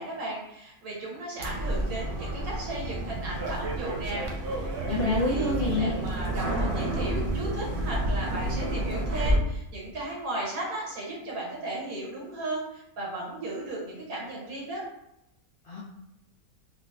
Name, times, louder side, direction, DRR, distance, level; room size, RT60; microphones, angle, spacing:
voice 1, 0.0-14.8, right 2 dB, 75° right, -4 dB, 1.5 m, -35 dB
sound 1, 1.4-9.4, right 1 dB, 60° right, 0.6 m, -30 dB
voice 2, 4.9-5.9 15.6-15.8, left 2 dB, 65° left, -5 dB, 0.5 m, -27 dB
4.2 x 2.1 x 2.6 m, 0.84 s
omnidirectional pair, 1.6 m